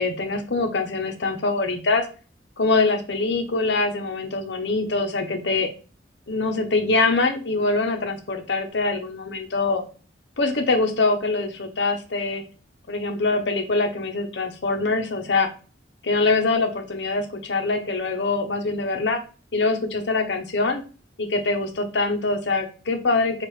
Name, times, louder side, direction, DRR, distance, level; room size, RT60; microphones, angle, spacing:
voice 1, 0.0-2.0 2.6-5.7 6.3-9.8 10.4-12.4 12.9-15.5 16.0-19.2 19.5-20.8 21.2-23.4, left 3 dB, 65° left, 5 dB, 0.8 m, -24 dB
6.6 x 2.4 x 3.1 m, 0.36 s
head